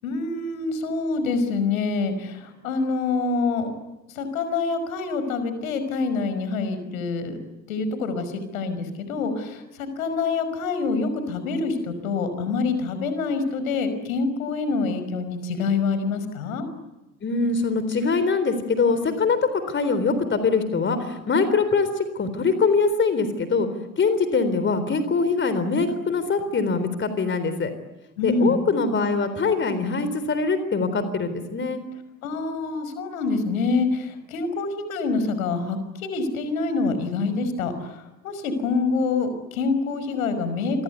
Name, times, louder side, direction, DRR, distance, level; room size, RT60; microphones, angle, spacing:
voice 1, 0.0-3.7 4.1-7.4 7.7-16.7 28.2-28.6 32.2-40.8, left 4 dB, 70° left, 11 dB, 5.5 m, -26 dB
voice 2, 17.2-23.7 24.0-27.7 28.2-31.8, left 4 dB, 25° left, 11 dB, 3.8 m, -23 dB
29.0 x 24.0 x 8.2 m, 1.0 s
figure-of-eight pair, 75°, 43 cm